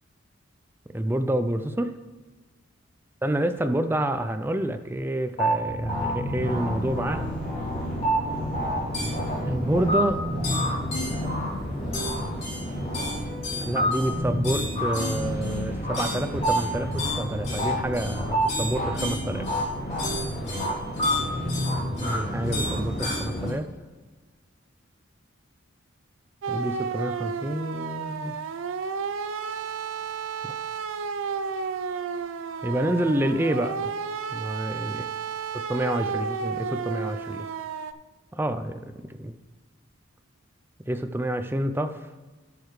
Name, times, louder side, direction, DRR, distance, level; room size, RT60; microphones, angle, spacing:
voice 1, 0.9-1.9 3.2-7.3 9.4-10.3 11.1-11.2 13.5-19.5 22.0-23.7 26.5-28.3 30.4-30.5 32.6-33.9 34.3-35.0 35.5-37.5 38.3-39.3 40.9-42.0, right 1 dB, 10° right, 9 dB, 0.4 m, -28 dB
sound 1, 5.4-23.5, equal, 30° left, 2.9 m, -28 dB
sound 2, 26.4-37.9, right 6 dB, 70° right, 0.4 m, -32 dB
11.5 x 6.8 x 3.2 m, 1.3 s
head